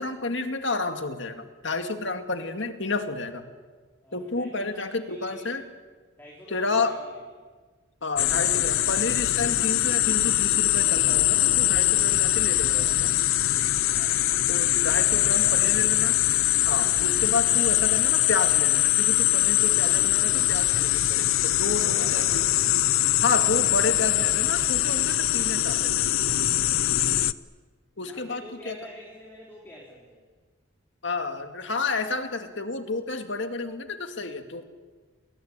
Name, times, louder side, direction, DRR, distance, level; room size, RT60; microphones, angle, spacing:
voice 1, 0.0-3.5 4.1-5.6 6.5-7.0 8.0-13.2 14.5-16.2 16.6-22.2 23.2-26.1 28.0-28.7 31.0-34.6, left 3 dB, 55° left, 6 dB, 2.2 m, -30 dB
voice 2, 4.0-5.6 6.2-7.1 7.4-7.5 13.9-15.9 16.4-16.9 21.6-22.4 28.0-30.2, left 1 dB, 10° left, -3 dB, 4.2 m, -48 dB
sound 1, 8.2-27.3, left 14 dB, 75° left, 0.7 m, -22 dB
30.0 x 21.0 x 8.9 m, 1.5 s
head